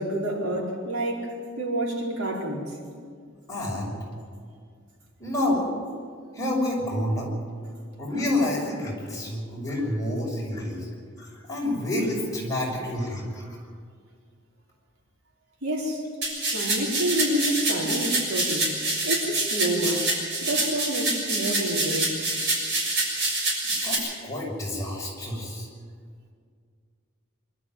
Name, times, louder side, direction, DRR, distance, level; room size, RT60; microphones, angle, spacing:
voice 1, 0.0-2.8 15.6-16.0 16.5-20.1 20.4-22.3, right 1 dB, 90° right, -2 dB, 4.9 m, -28 dB
voice 2, 3.5-3.9 5.2-5.7 6.3-7.3 8.0-10.9 11.2-13.6 23.8-25.7, left 1 dB, 15° left, -3 dB, 6.2 m, -28 dB
sound 1, 16.2-24.0, right 2 dB, 55° right, 6.8 m, -26 dB
25.0 x 13.0 x 9.5 m, 2.1 s
head